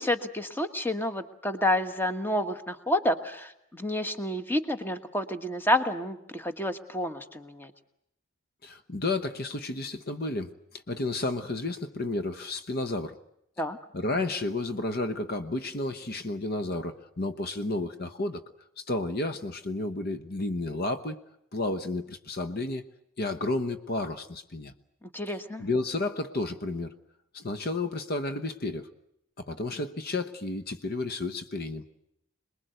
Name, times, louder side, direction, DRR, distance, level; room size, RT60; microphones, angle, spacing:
voice 1, 0.0-7.7 13.6-13.8 25.1-25.6, left 1 dB, 10° left, 9 dB, 1.4 m, -29 dB
voice 2, 8.6-13.2 13.9-18.4 18.8-21.2 21.5-22.8 23.2-24.7 25.6-26.9 27.3-28.9 29.4-31.8, left 2 dB, 45° left, 9 dB, 1.0 m, -32 dB
27.0 x 21.0 x 8.0 m, 0.79 s
head